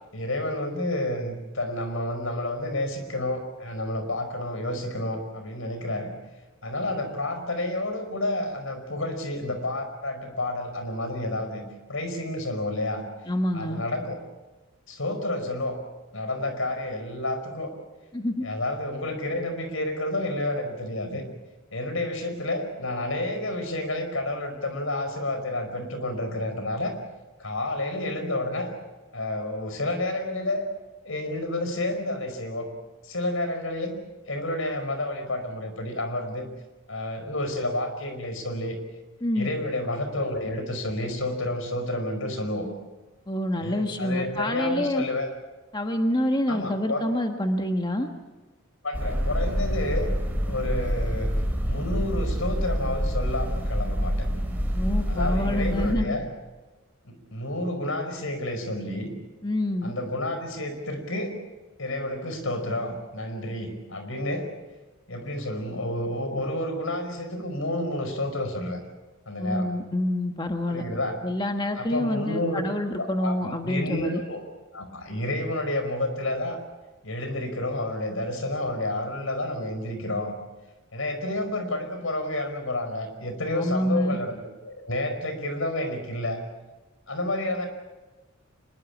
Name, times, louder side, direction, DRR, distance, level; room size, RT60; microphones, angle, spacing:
voice 1, 0.1-6.1 6.6-11.6 11.9-13.0 13.5-14.2 14.9-15.8 16.1-17.7 18.4-21.2 21.7-26.9 27.4-28.7 29.1-30.7 31.1-32.7 33.0-34.0 34.3-36.5 36.9-38.8 39.4-42.7 43.6-45.3 46.5-47.1 48.8-50.1 50.5-51.3 51.6-54.3 55.1-56.3 57.0-59.1 59.8-61.3 61.8-64.5 65.1-68.8 69.3-69.7 70.7-71.2 71.8-72.6 73.0-74.4 74.7-76.6 77.0-80.4 80.9-84.4 84.6-86.4 87.1-87.7, left 1 dB, 75° left, 8 dB, 5.2 m, -30 dB
voice 2, 13.3-13.8 18.1-18.3 39.2-39.5 43.3-45.0 45.7-48.1 54.7-56.2 59.4-59.9 69.4-70.8 71.2-74.2 83.5-84.2, left 1 dB, 20° left, 4 dB, 1.4 m, -27 dB
sound 1, 48.9-55.9, equal, 10° right, 5.1 m, -27 dB
25.0 x 22.0 x 7.2 m, 1.2 s
head